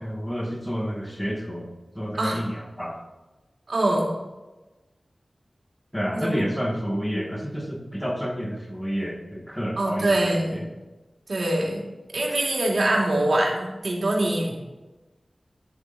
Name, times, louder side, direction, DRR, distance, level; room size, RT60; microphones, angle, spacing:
voice 1, 0.0-3.0 5.9-10.6, equal, 10° left, 1 dB, 1.9 m, -30 dB
voice 2, 3.7-4.2 6.1-6.4 9.8-10.6 11.3-11.8 12.1-14.7, right 1 dB, 75° right, -2 dB, 2.8 m, -24 dB
11.0 x 7.2 x 4.1 m, 1.1 s
wide cardioid pair, 50°, 0 cm